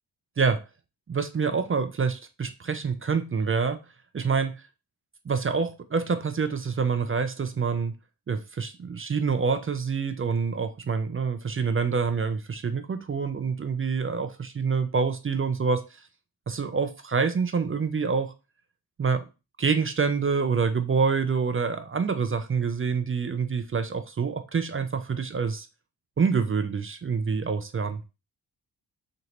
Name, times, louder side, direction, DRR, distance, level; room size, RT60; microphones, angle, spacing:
voice 1, 1.1-3.8 4.1-4.5 5.3-7.9 8.3-16.0 16.5-18.3 19.0-19.3 19.6-25.7 26.2-28.0, right 5 dB, 30° right, 0.5 m, -26 dB
2.9 x 2.9 x 2.9 m
supercardioid pair, 40°, 47 cm